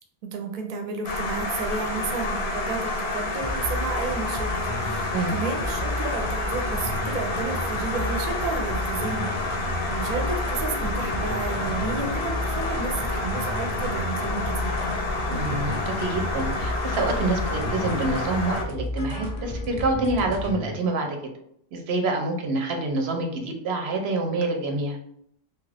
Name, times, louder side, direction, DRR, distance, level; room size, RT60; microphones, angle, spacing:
voice 1, 0.2-14.7, right 4 dB, 55° right, 4 dB, 0.6 m, -32 dB
sound 1, 1.0-18.6, left 2 dB, 85° left, 0.9 m, -29 dB
sound 2, 3.4-20.7, left 1 dB, 35° left, 0.6 m, -33 dB
voice 2, 15.3-21.2 21.7-25.0, right 2 dB, 90° right, 4 dB, 0.9 m, -27 dB
2.8 x 2.4 x 3.3 m, 0.70 s
omnidirectional pair, 1.1 m